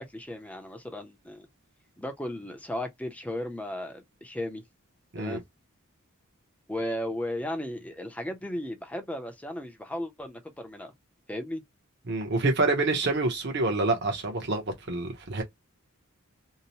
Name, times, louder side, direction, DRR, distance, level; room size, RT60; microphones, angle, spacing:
voice 1, 0.0-1.5 2.0-4.6 5.2-5.4 6.7-10.9 11.3-11.6, left 1 dB, 5° left, 0.5 m, -35 dB
voice 2, 12.1-15.4, right 2 dB, 55° right, 0.8 m, -27 dB
2.7 x 2.0 x 2.8 m
head